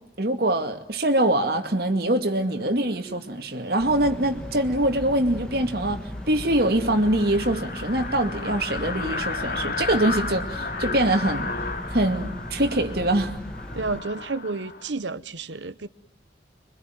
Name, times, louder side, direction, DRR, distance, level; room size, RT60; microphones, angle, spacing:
voice 1, 0.2-11.5 11.9-13.4, right 1 dB, 55° right, 2.4 m, -24 dB
sound 1, 3.8-14.0, equal, 5° left, 1.7 m, -37 dB
sound 2, 5.0-5.1 5.4-5.5 5.8-5.9 6.2-14.9, left 4 dB, 50° left, 2.7 m, -34 dB
voice 2, 13.7-15.9, right 3 dB, 75° right, 1.0 m, -31 dB
26.5 x 24.0 x 9.3 m
head